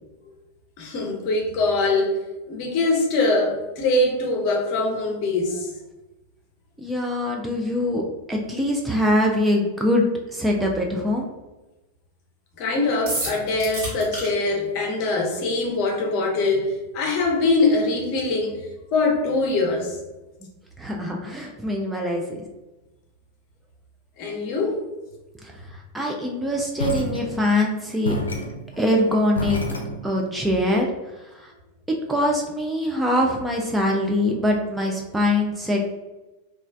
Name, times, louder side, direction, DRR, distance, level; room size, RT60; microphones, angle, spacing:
voice 1, 0.8-2.1 2.5-5.7 12.6-18.6 18.9-20.0 24.2-24.8, left 2 dB, 45° left, 1 dB, 0.7 m, -23 dB
voice 2, 6.8-11.3 20.8-22.4 25.4-25.5 25.9-28.2 28.8-29.6 30.0-30.9 31.3-31.5 32.1-35.9, left 1 dB, 5° right, 0 dB, 0.4 m, -23 dB
sound 1, 13.1-14.3, right 2 dB, 50° right, 1.2 m, -28 dB
sound 2, 26.8-27.7 28.0-30.4, left 2 dB, 75° left, 0.4 m, -30 dB
3.0 x 2.3 x 2.5 m, 1.1 s
figure-of-eight pair, 90°, 0 cm